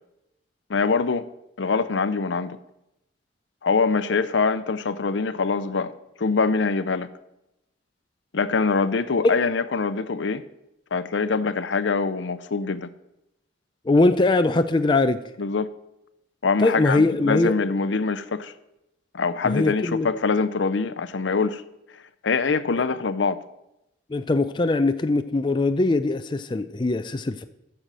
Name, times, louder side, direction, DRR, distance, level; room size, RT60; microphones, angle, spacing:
voice 1, 0.7-1.3 1.6-2.6 3.6-5.9 6.2-7.1 8.3-10.4 10.9-12.9 15.4-15.7 16.4-18.5 19.1-21.6 22.2-23.4, left 4 dB, 75° left, 13 dB, 0.6 m, -24 dB
voice 2, 13.9-15.2 16.6-17.5 19.4-20.1 24.1-27.5, left 2 dB, 25° left, 9 dB, 0.4 m, -21 dB
9.1 x 6.8 x 7.5 m, 0.86 s
head